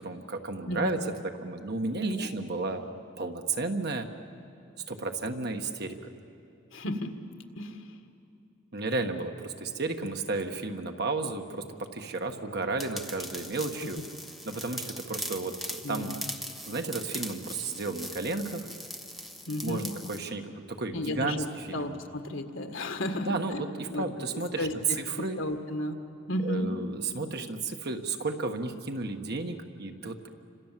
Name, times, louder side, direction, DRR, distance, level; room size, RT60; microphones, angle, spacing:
voice 1, 0.0-2.9 3.2-4.1 4.9-6.1 8.7-14.0 14.4-16.1 16.7-18.7 19.6-22.0 23.2-25.4 26.4-30.3, right 3 dB, 55° right, 5 dB, 1.5 m, -33 dB
voice 2, 6.7-7.2 7.6-7.8 15.8-16.3 19.5-19.9 20.9-23.6 23.9-24.1 24.6-24.7 25.2-26.0 26.3-26.7, left 1 dB, 80° left, 6 dB, 1.9 m, -33 dB
sound 1, 12.8-20.2, equal, ahead, 1.2 m, -40 dB
30.0 x 26.0 x 7.6 m, 2.8 s
head